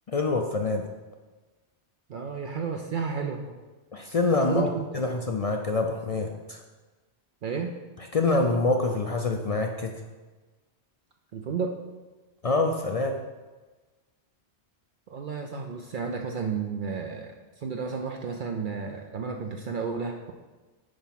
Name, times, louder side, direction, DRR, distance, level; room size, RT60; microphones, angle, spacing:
voice 1, 0.1-0.9 3.9-6.6 8.1-10.0 12.4-13.2, left 3 dB, 50° left, 3 dB, 0.4 m, -26 dB
voice 2, 2.1-3.6 4.5-5.0 7.4-7.7 11.3-11.8 15.1-20.3, right 5 dB, 55° right, 3 dB, 0.6 m, -32 dB
8.6 x 3.5 x 5.8 m, 1.3 s
omnidirectional pair, 1.1 m